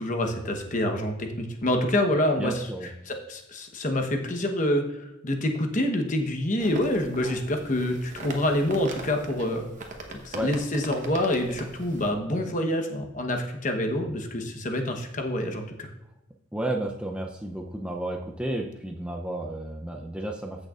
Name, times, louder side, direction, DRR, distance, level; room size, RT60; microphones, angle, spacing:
voice 1, 0.0-2.7 3.1-9.7 10.2-15.9, left 1 dB, 40° left, 4 dB, 1.0 m, -27 dB
voice 2, 2.4-2.9 10.3-10.5 16.5-20.7, right 1 dB, 5° right, 1 dB, 0.5 m, -32 dB
sound 1, 6.6-12.1, right 2 dB, 40° right, 1.1 m, -41 dB
14.5 x 6.5 x 2.5 m, 0.89 s
head